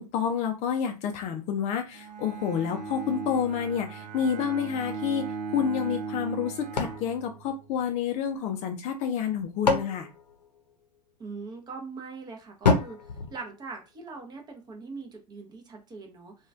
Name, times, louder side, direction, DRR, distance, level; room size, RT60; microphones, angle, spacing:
voice 1, 0.0-10.1, left 7 dB, 35° left, 0.4 m, -29 dB
Bowed string instrument, 1.9-7.7, right 5 dB, 80° right, 0.6 m, -38 dB
sound 1, 6.8-8.3 9.2-11.1 12.6-14.2, left 4 dB, 85° left, 0.7 m, -29 dB
voice 2, 11.2-13.0 13.3-16.3, right 4 dB, 20° right, 0.6 m, -41 dB
2.9 x 2.3 x 2.4 m
figure-of-eight pair, 95°, 21 cm